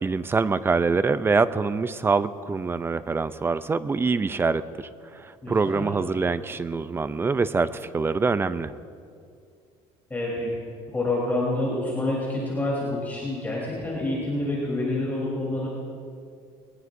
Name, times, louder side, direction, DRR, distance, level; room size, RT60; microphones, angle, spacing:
voice 1, 0.0-4.6 5.1-8.7, right 4 dB, 15° right, 14 dB, 0.4 m, -24 dB
voice 2, 5.4-6.0 10.1-10.5 10.9-15.7, left 2 dB, 15° left, -6 dB, 3.7 m, -27 dB
21.5 x 19.5 x 2.6 m, 2.3 s
cardioid pair, 140°, 14 cm